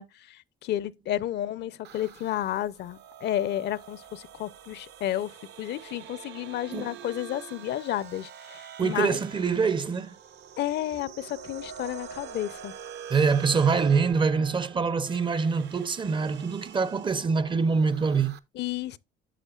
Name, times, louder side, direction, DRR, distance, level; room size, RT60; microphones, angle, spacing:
voice 1, 0.0-9.2 10.6-12.7 18.6-19.0, left 12 dB, 60° left, 0.5 m, -32 dB
sound 1, 1.8-18.4, right 8 dB, 60° right, 0.7 m, -45 dB
voice 2, 8.8-10.2 13.1-18.4, right 5 dB, 25° right, 0.5 m, -25 dB
9.9 x 6.6 x 2.3 m
cardioid pair, 100°, 20 cm